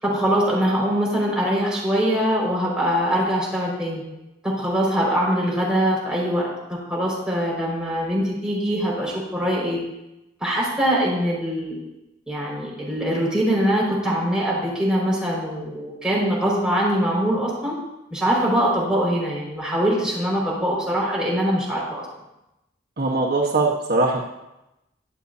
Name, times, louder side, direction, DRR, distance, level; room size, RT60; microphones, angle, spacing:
voice 1, 0.0-4.0 4.4-9.8 10.4-11.8 12.3-17.8 18.1-22.0, equal, 5° right, -6 dB, 5.3 m, -23 dB
voice 2, 23.0-24.2, right 2 dB, 60° right, -1 dB, 1.3 m, -21 dB
22.5 x 8.4 x 2.8 m, 0.92 s
head